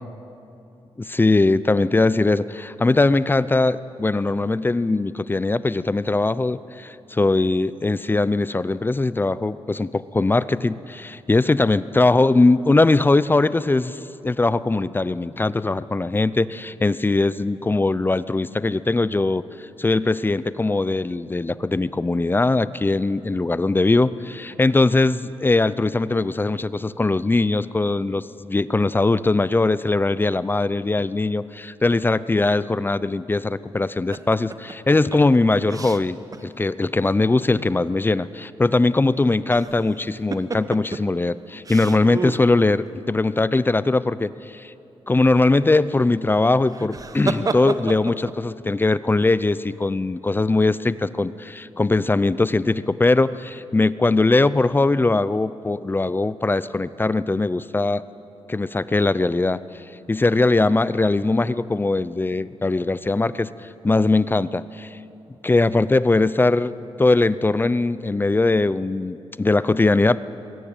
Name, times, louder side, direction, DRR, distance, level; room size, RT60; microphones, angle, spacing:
voice 1, 1.0-19.4 19.8-44.7 45.1-58.0 58.5-59.6 60.1-63.5 63.8-65.0 65.4-70.2, left 2 dB, 20° left, 16 dB, 0.6 m, -20 dB
sound 1, 34.1-36.4 36.8-36.9 39.2-39.9 40.3-41.0 41.6-42.4 46.6-48.3, right 3 dB, 35° right, 1.1 m, -30 dB
21.5 x 17.0 x 9.0 m, 2.7 s
cardioid pair, 95°, 10 cm